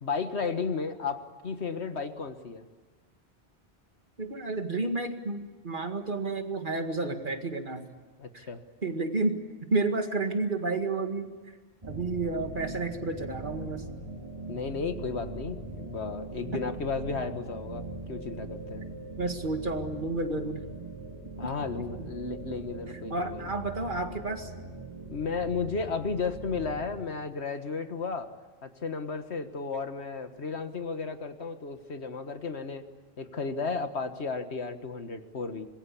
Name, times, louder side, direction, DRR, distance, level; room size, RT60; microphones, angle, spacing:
voice 1, 0.0-2.6 8.2-8.6 14.5-18.9 21.4-23.5 25.1-28.3 28.6-32.8 33.2-35.7, left 4 dB, 80° left, 8 dB, 1.8 m, -34 dB
voice 2, 4.2-7.9 8.3-8.5 8.8-9.4 9.7-11.3 11.9-13.9 19.2-20.6 22.9-24.5, right 3 dB, 50° right, 6 dB, 2.1 m, -31 dB
sound 1, 11.8-27.0, right 2 dB, 30° right, 2.8 m, -41 dB
26.0 x 21.5 x 8.5 m, 1.4 s
omnidirectional pair, 1.1 m